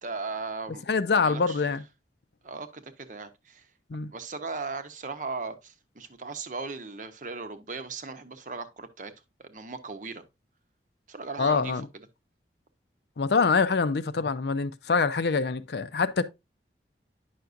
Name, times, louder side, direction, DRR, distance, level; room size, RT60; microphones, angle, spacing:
voice 1, 0.0-0.8 1.2-1.6 2.4-3.7 4.1-9.1 9.4-10.2 11.1-12.1, right 4 dB, 45° right, 0.7 m, -37 dB
voice 2, 0.9-1.8 3.9-4.1 11.4-11.9 13.2-16.2, left 4 dB, 65° left, 0.5 m, -25 dB
9.3 x 5.8 x 2.5 m
head